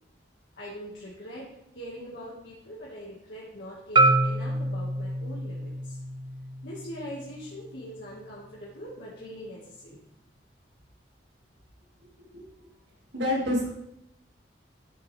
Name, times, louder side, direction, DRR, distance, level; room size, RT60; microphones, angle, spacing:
voice 1, 0.6-1.5 1.7-6.0 6.6-10.0, equal, 65° left, -6 dB, 2.0 m, -42 dB
Marimba xylophone, 4.0-8.1, right 2 dB, 25° right, 0.6 m, -27 dB
voice 2, 13.1-13.7, left 1 dB, 80° right, -2 dB, 2.4 m, -27 dB
12.5 x 7.2 x 3.5 m, 0.79 s
head